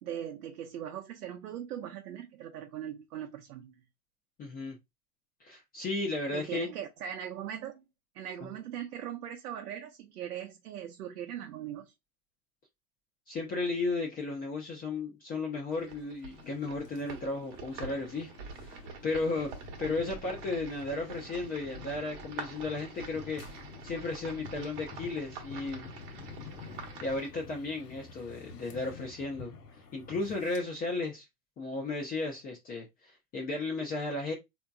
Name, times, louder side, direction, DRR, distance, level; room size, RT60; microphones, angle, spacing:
voice 1, 0.0-3.8 6.3-7.8 8.1-11.9, right 10 dB, 75° right, 0.8 m, -40 dB
voice 2, 4.4-4.8 5.4-6.7 13.3-18.3 18.7-19.5 19.8-23.4 23.8-25.9 27.0-29.5 29.9-31.2 31.6-34.3, left 3 dB, 20° left, 0.6 m, -34 dB
sound 1, 15.7-27.3, right 5 dB, 45° right, 1.1 m, -46 dB
sound 2, 16.3-30.6, left 4 dB, 80° left, 1.1 m, -49 dB
3.5 x 2.8 x 2.2 m
hypercardioid pair, 120°, 46 cm